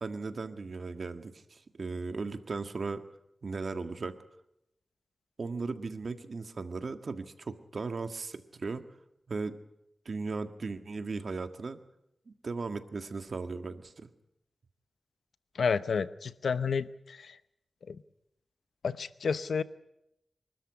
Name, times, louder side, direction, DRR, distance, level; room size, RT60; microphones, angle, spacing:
voice 1, 0.0-3.0 3.4-4.1 5.4-8.8 9.3-9.6 10.1-11.8 12.3-14.1, right 4 dB, 65° right, 9 dB, 1.7 m, -37 dB
voice 2, 15.6-17.3 17.9-18.0 18.8-19.6, left 5 dB, 90° left, 15 dB, 0.8 m, -30 dB
24.5 x 13.0 x 9.7 m, 0.81 s
wide cardioid pair, 70°, 0 cm